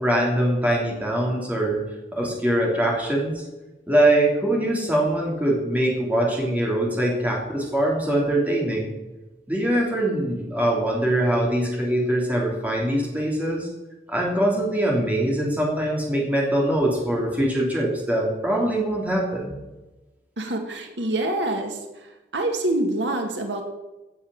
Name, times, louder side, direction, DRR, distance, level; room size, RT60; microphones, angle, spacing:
voice 1, 0.0-1.8 2.2-3.4 3.9-8.9 9.5-13.7 14.1-19.6, right 1 dB, 10° right, -2 dB, 3.1 m, -23 dB
voice 2, 20.4-21.8 22.3-23.6, right 1 dB, 90° right, 4 dB, 2.0 m, -25 dB
16.0 x 7.2 x 6.4 m, 1.1 s
head